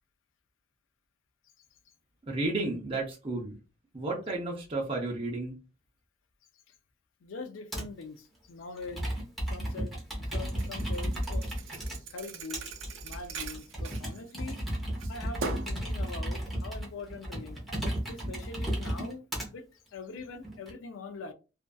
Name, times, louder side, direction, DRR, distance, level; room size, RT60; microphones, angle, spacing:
voice 1, 2.2-3.6 3.9-5.6, right 2 dB, 30° right, 0.6 m, -32 dB
voice 2, 7.2-9.1 9.5-10.0 10.3-11.5 12.1-12.7 13.0-14.6 15.1-17.6 18.1-19.3 19.5-19.6 19.9-21.3, left 4 dB, 85° left, 0.4 m, -43 dB
Computer keyboard, 7.7-8.0 8.8-12.0 12.5-19.5 20.1-20.7, equal, ahead, 0.8 m, -34 dB
Thump thud, 10.6-14.6 15.0-15.8, right 4 dB, 85° right, 0.4 m, -40 dB
2.5 x 2.4 x 2.2 m
head